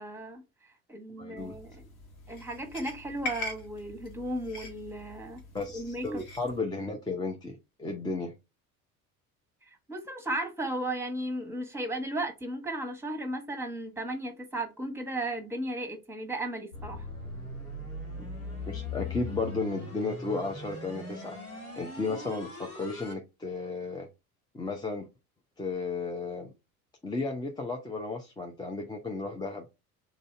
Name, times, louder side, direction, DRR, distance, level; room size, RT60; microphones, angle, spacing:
voice 1, 0.0-1.8 2.3-5.4 5.7-6.2 9.6-17.1, right 1 dB, 5° right, 1.2 m, -35 dB
voice 2, 1.2-1.5 5.5-8.3 18.2-18.3 18.7-21.4 21.8-24.1 24.5-25.1 25.6-26.5 27.0-29.7, left 3 dB, 10° left, 0.6 m, -34 dB
sound 1, 1.4-6.6, left 2 dB, 55° left, 1.5 m, -43 dB
sound 2, 16.7-23.1, left 2 dB, 85° left, 2.6 m, -39 dB
3.9 x 2.7 x 4.5 m
figure-of-eight pair, 65°, 44 cm